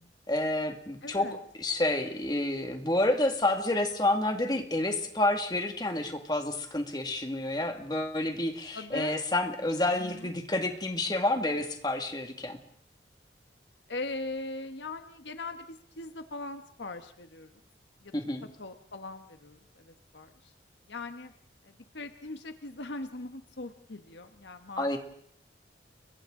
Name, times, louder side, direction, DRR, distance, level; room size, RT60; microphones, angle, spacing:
voice 1, 0.3-1.3 1.6-12.6 18.1-18.5 24.8-25.0, left 1 dB, 20° left, 5 dB, 2.0 m, -29 dB
voice 2, 1.0-1.4 8.7-9.2 10.0-10.3 13.9-17.5 18.0-18.2 18.6-20.5 20.9-21.3 21.6-24.9, left 2 dB, 75° left, 8 dB, 1.2 m, -40 dB
30.0 x 23.0 x 3.8 m, 0.64 s
head